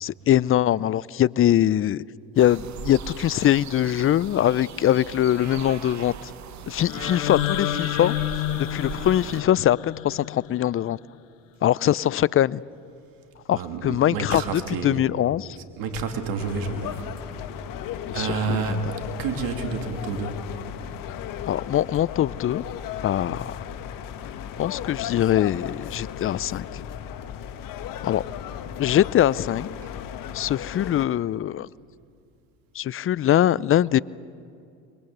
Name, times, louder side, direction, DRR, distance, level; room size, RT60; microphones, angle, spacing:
voice 1, 0.0-2.0 2.4-6.3 6.7-8.1 8.5-11.0 11.6-12.6 13.5-15.6 18.1-18.8 21.4-22.6 23.0-23.6 24.3-26.8 28.0-28.2 28.8-29.7 30.3-31.7 32.7-34.0, left 11 dB, 35° left, 0.5 m, -22 dB
sound 1, 2.4-9.4, right 7 dB, 50° right, 1.6 m, -39 dB
sound 2, 6.8-10.9, left 14 dB, 90° left, 0.8 m, -30 dB
voice 2, 13.5-15.0 15.6-17.3 18.1-20.4 23.2-23.5 29.8-29.9 30.4-30.5, right 5 dB, 65° right, 2.7 m, -30 dB
sound 3, 16.4-31.1, left 9 dB, 60° left, 1.5 m, -35 dB
25.0 x 22.0 x 8.0 m
hypercardioid pair, 70°, 38 cm